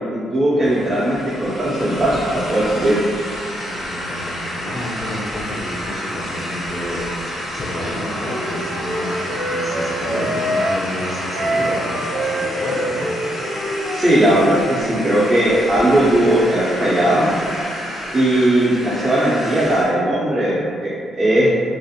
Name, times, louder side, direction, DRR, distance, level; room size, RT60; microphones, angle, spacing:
voice 1, 0.1-3.0 13.9-17.3 18.1-21.5, right 1 dB, 30° right, -8 dB, 0.5 m, -18 dB
sound 1, 0.6-19.9, equal, 90° left, 0.7 m, -29 dB
voice 2, 3.6-7.0 7.3-9.1 9.5-13.2, left 1 dB, 30° left, -3 dB, 0.5 m, -30 dB
Wind instrument woodwind instrument, 7.6-10.8 11.3-14.6, right 1 dB, 80° right, 0.5 m, -26 dB
2.4 x 2.0 x 2.7 m, 2.2 s
cardioid pair, 90°, 0 cm